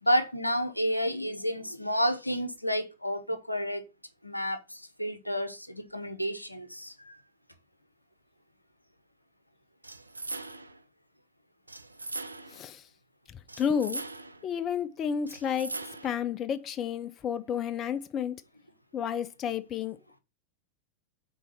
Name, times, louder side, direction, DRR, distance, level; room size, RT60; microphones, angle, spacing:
voice 1, 0.0-3.8 4.2-7.1, equal, 90° left, 0.7 m, -30 dB
sound 1, 9.8-10.8 11.7-12.7 13.5-14.5 15.3-16.2, right 2 dB, 80° right, 0.4 m, -40 dB
voice 2, 12.5-12.8 13.6-14.0 14.4-15.8 16.0-18.3 18.9-20.0, left 8 dB, 30° left, 0.4 m, -31 dB
4.6 x 4.0 x 5.6 m
figure-of-eight pair, 90°, 0 cm